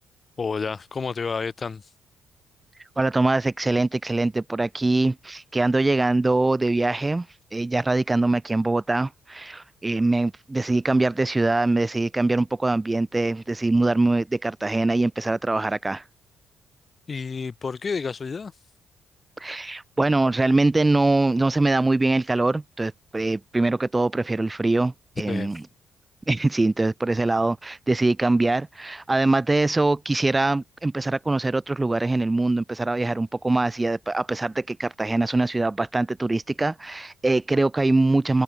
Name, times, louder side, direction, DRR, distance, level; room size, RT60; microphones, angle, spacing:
voice 1, 0.4-1.8 17.1-18.5 25.3-25.5, left 5 dB, 35° left, 7.2 m, -30 dB
voice 2, 3.0-7.3 7.5-16.0 19.4-25.6 26.3-38.4, right 2 dB, 15° right, 3.6 m, -23 dB
cardioid pair, 90°, 0 cm